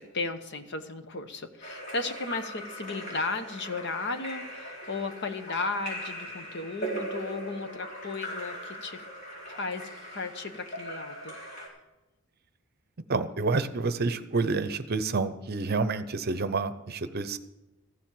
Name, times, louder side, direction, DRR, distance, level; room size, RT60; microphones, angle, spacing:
voice 1, 0.0-9.1 9.6-11.3, left 3 dB, 55° left, 8 dB, 1.0 m, -35 dB
Splash splatter / Drip / Trickle dribble, 1.6-11.7, equal, 40° left, 4.6 m, -40 dB
voice 2, 13.1-17.4, right 3 dB, 50° right, 12 dB, 0.7 m, -28 dB
14.5 x 7.4 x 7.6 m, 1.0 s
head